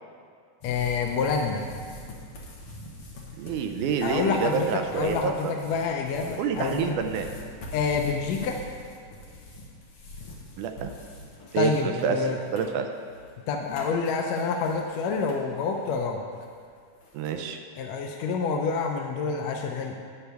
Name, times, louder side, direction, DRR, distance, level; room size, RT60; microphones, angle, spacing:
voice 1, 0.6-1.6 4.0-7.0 7.7-8.6 11.5-12.4 13.5-16.2 17.7-20.0, left 5 dB, 85° left, 2 dB, 1.6 m, -27 dB
sound 1, 0.6-16.1 16.3-17.3, left 1 dB, 55° left, 1.7 m, -43 dB
voice 2, 3.4-5.3 6.4-7.2 10.6-10.9 11.5-12.2 12.5-12.9 17.1-17.6, right 7 dB, 80° right, 5 dB, 2.0 m, -27 dB
9.8 x 9.1 x 3.4 m, 2.1 s
omnidirectional pair, 3.7 m